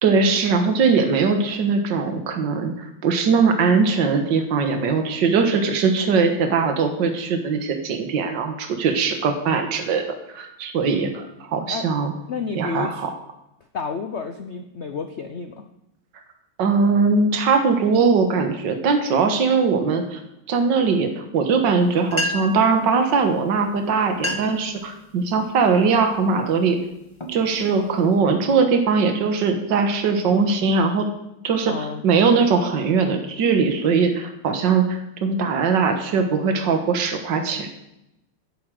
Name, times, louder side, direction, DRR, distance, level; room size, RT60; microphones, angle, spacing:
voice 1, 0.0-10.0 10.3-12.1 12.6-13.1 16.6-20.2 20.5-26.8 27.3-31.1 31.4-37.7, right 5 dB, 65° right, 5 dB, 2.0 m, -20 dB
voice 2, 12.3-13.0 13.7-15.6 31.7-32.0, left 5 dB, 50° left, 7 dB, 0.8 m, -30 dB
sound 1, 21.8-21.9 22.1-22.7 23.6-23.7 24.1-24.7 25.2-25.5 26.1-26.4 26.9-28.2, left 1 dB, 15° left, 1.3 m, -30 dB
11.5 x 8.5 x 7.6 m, 0.85 s
omnidirectional pair, 2.1 m